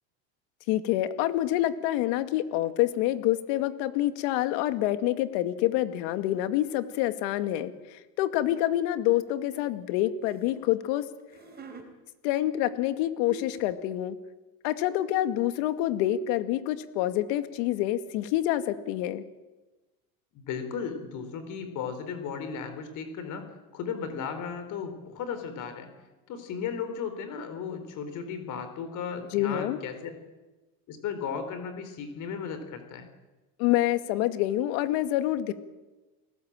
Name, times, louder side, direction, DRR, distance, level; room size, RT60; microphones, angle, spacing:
voice 1, 0.7-11.0 12.2-14.2 14.6-19.2 29.3-29.8 33.6-35.5, left 14 dB, 70° left, 10 dB, 2.2 m, -27 dB
sound 1, 8.5-8.7 9.3-10.5 11.2-11.9 12.9-13.0 13.2-13.7, right 2 dB, 25° right, 4.4 m, -45 dB
voice 2, 20.3-25.9 26.3-30.2 30.9-33.1, left 6 dB, 45° left, 9 dB, 4.3 m, -35 dB
29.0 x 19.5 x 9.0 m, 1.2 s
supercardioid pair, 140°, 40 cm